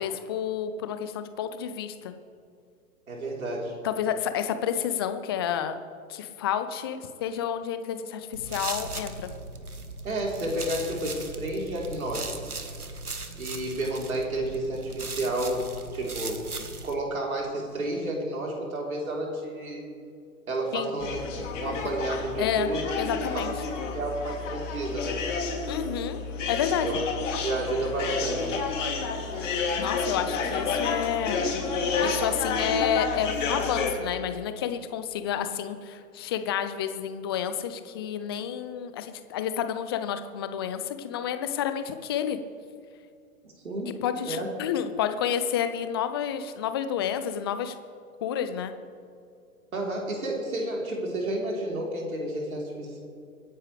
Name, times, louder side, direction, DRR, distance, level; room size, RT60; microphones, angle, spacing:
voice 1, 0.0-2.1 3.8-5.8 6.1-9.3 20.7-20.9 22.4-22.7 23.0-23.5 25.7-26.2 26.5-26.9 29.8-31.4 32.0-42.4 44.0-47.7 48.2-48.7, left 9 dB, 20° left, 10 dB, 0.4 m, -30 dB
voice 2, 3.1-3.8 10.0-12.3 13.4-16.4 16.8-19.9 20.5-23.5 23.9-25.2 26.8-27.0 27.4-28.6 43.4-43.9 44.2-44.5 49.7-53.0, right 1 dB, 70° right, -2 dB, 3.9 m, -31 dB
sound 1, 8.3-16.9, right 3 dB, 90° right, 1.3 m, -38 dB
sound 2, 21.0-33.9, left 4 dB, 55° left, 3.0 m, -30 dB
25.5 x 10.0 x 3.4 m, 2.4 s
figure-of-eight pair, 115°, 44 cm